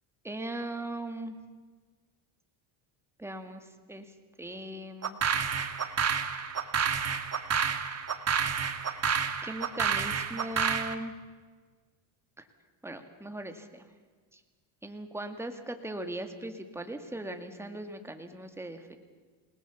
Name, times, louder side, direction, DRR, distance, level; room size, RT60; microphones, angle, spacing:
voice 1, 0.2-1.4 3.2-4.1 4.4-5.2 9.4-11.1 12.8-13.9 14.3-14.4 14.8-19.0, right 1 dB, 5° right, 6 dB, 2.1 m, -39 dB
sound 1, 5.0-10.9, right 6 dB, 30° right, 1.7 m, -29 dB
28.5 x 19.0 x 7.2 m, 1.4 s
cardioid pair, 115°, 47 cm